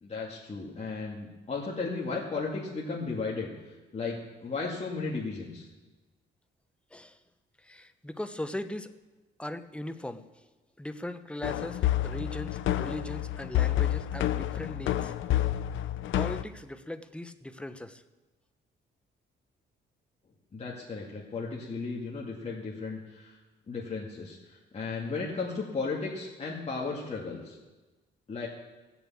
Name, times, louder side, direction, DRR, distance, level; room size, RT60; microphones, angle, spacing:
voice 1, 0.0-3.5 3.9-5.7 20.5-23.4 23.7-24.4 24.7-27.6 28.3-28.5, left 4 dB, 35° left, -4 dB, 2.4 m, -35 dB
voice 2, 7.6-8.9 9.4-10.5 10.8-15.1 16.1-18.0, left 1 dB, 5° left, 10 dB, 0.9 m, -39 dB
sound 1, 11.4-16.4, left 12 dB, 75° left, 0.7 m, -29 dB
16.5 x 7.1 x 8.7 m, 1.2 s
cardioid pair, 90°, 20 cm